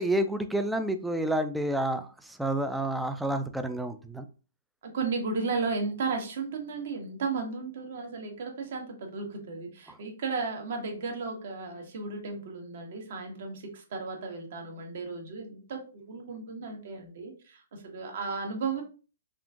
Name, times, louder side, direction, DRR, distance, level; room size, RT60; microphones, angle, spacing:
voice 1, 0.0-4.3, right 1 dB, 5° right, 8 dB, 0.3 m, -29 dB
voice 2, 4.8-18.8, right 4 dB, 55° right, 3 dB, 1.0 m, -34 dB
3.6 x 2.4 x 2.4 m, 0.36 s
figure-of-eight pair, 125°, 0 cm